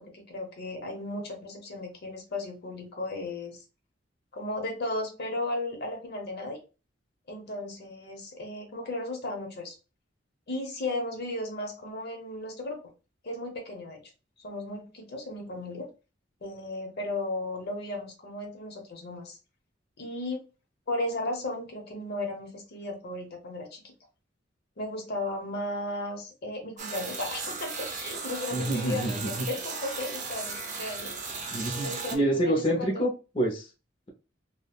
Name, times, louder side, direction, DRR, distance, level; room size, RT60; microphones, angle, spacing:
voice 1, 0.0-3.6 4.3-6.6 7.3-9.8 10.5-12.8 13.2-14.0 14.4-15.9 16.4-19.4 20.0-20.4 20.9-23.9 24.8-31.1 31.8-33.1, left 2 dB, 55° left, 3 dB, 0.9 m, -35 dB
sound 1, 26.8-32.2, right 4 dB, 40° right, 0.6 m, -36 dB
voice 2, 28.5-29.5 31.5-33.7, right 1 dB, 30° left, -2 dB, 0.6 m, -27 dB
3.5 x 2.2 x 2.3 m, 0.31 s
head